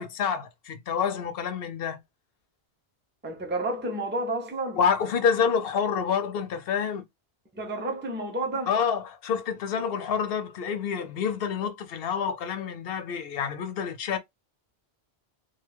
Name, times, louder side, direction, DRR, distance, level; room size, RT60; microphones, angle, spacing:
voice 1, 0.0-2.0 4.8-7.0 8.7-14.2, left 7 dB, 70° left, 0.8 m, -28 dB
voice 2, 3.2-4.8 7.5-8.7, right 2 dB, 15° right, 0.5 m, -30 dB
2.5 x 2.3 x 3.2 m
omnidirectional pair, 1.1 m